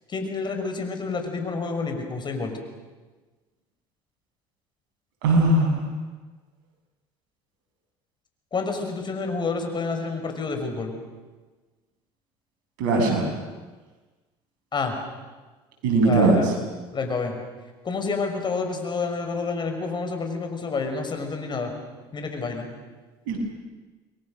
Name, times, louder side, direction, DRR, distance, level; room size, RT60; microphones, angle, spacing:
voice 1, 0.1-2.5 8.5-10.9 14.7-14.9 16.0-16.4 16.9-17.3 17.8-21.7 22.1-22.7, left 4 dB, 35° left, 5 dB, 5.9 m, -29 dB
voice 2, 5.2-5.8 12.8-13.2 15.8-16.4 23.3-23.4, right 2 dB, 80° right, 1 dB, 7.5 m, -19 dB
28.5 x 22.5 x 6.6 m, 1.3 s
supercardioid pair, 80°, 13 cm